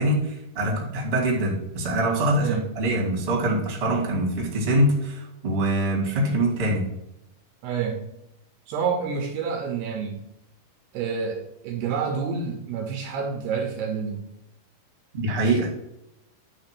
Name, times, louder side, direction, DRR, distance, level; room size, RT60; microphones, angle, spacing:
voice 1, 0.0-6.8 15.1-15.7, right 1 dB, 25° right, -3 dB, 1.4 m, -24 dB
voice 2, 2.4-2.8 7.6-8.1 8.7-10.2 10.9-14.2, right 6 dB, 75° right, 2 dB, 2.6 m, -28 dB
11.0 x 3.7 x 6.0 m, 0.84 s
omnidirectional pair, 5.4 m